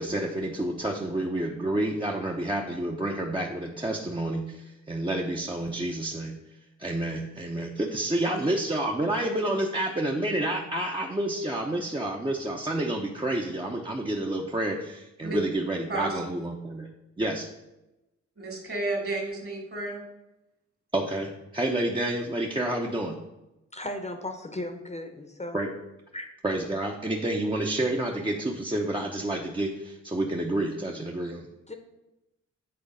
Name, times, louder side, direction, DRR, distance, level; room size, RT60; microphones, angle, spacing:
voice 1, 0.0-6.4 6.8-16.9 17.2-17.5 20.9-23.2 25.5-25.7 26.4-31.5, right 1 dB, 15° right, -1 dB, 0.8 m, -29 dB
voice 2, 15.9-16.3 18.4-20.0, right 2 dB, 50° right, 1 dB, 2.3 m, -31 dB
voice 3, 23.7-25.6 26.1-26.3 31.7-31.8, left 1 dB, 25° left, 6 dB, 0.9 m, -36 dB
7.8 x 3.9 x 5.3 m, 0.96 s
cardioid pair, 65°, 29 cm